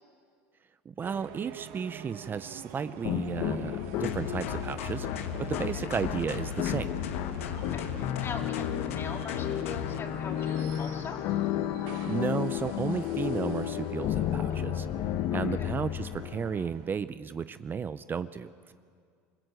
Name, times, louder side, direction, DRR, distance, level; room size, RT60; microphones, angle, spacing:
voice 1, 0.9-7.0 12.1-14.9 15.3-18.7, right 6 dB, 30° right, 13 dB, 0.7 m, -34 dB
sound 1, 1.0-17.0, right 11 dB, 70° right, 1.6 m, -48 dB
sound 2, 3.0-16.7, left 11 dB, 65° left, 1.1 m, -32 dB
sound 3, 4.0-10.0, left 8 dB, 90° left, 1.5 m, -37 dB
voice 2, 7.5-11.2 14.5-14.9 15.3-15.7, left 5 dB, 35° left, 2 dB, 3.8 m, -43 dB
27.5 x 20.0 x 8.1 m, 2.1 s
supercardioid pair, 95°, 7 cm